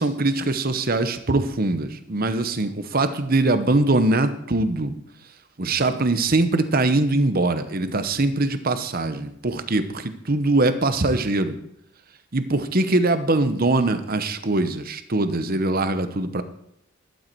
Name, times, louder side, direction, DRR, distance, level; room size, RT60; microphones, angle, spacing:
voice 1, 0.0-4.9 5.6-11.6 12.3-16.4, right 2 dB, 40° right, 10 dB, 0.9 m, -22 dB
12.0 x 12.0 x 4.7 m, 0.75 s
head